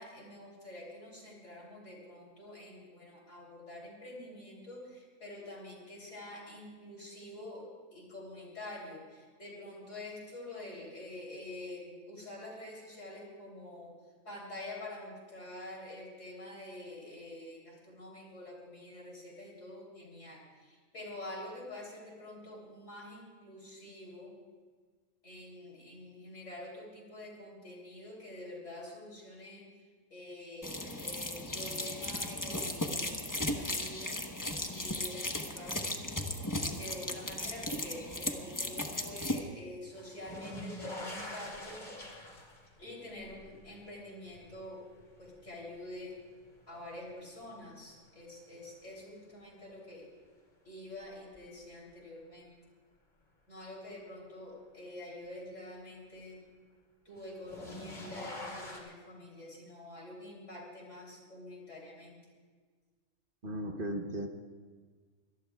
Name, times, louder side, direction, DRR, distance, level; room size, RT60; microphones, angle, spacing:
voice 1, 0.0-14.0 14.2-24.4 25.2-29.7 30.1-34.3 34.7-36.2 36.8-41.9 42.8-44.8 45.2-46.2 46.7-50.1 50.7-52.5 53.5-56.5 57.1-62.2, left 1 dB, 55° left, -3 dB, 3.7 m, -47 dB
sound 1, 30.6-39.4, left 1 dB, 15° left, 0.9 m, -36 dB
sound 2, 39.9-47.0 47.4-48.1 49.7-49.8 51.3-51.4 57.2-58.8, left 1 dB, 30° left, 2.6 m, -45 dB
voice 2, 63.4-64.3, equal, 40° right, 5 dB, 1.1 m, -36 dB
24.5 x 18.5 x 2.4 m, 1.5 s
omnidirectional pair, 1.6 m